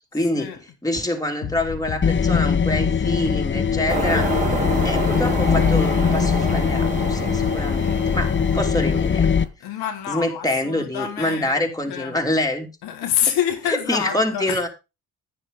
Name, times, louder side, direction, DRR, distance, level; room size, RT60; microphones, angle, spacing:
voice 1, 0.1-0.5 0.8-4.3 4.8-9.4 10.1-12.7 13.7-14.7, left 1 dB, 10° left, 2.9 m, -26 dB
sound 1, 1.4-8.8, left 8 dB, 60° left, 1.6 m, -33 dB
sound 2, 2.0-9.4, left 6 dB, 30° left, 0.8 m, -21 dB
sound 3, 3.9-9.4, right 2 dB, 20° right, 3.9 m, -28 dB
voice 2, 9.6-12.1 12.8-14.7, left 9 dB, 85° left, 1.8 m, -27 dB
10.5 x 9.5 x 3.8 m
supercardioid pair, 55°, 38 cm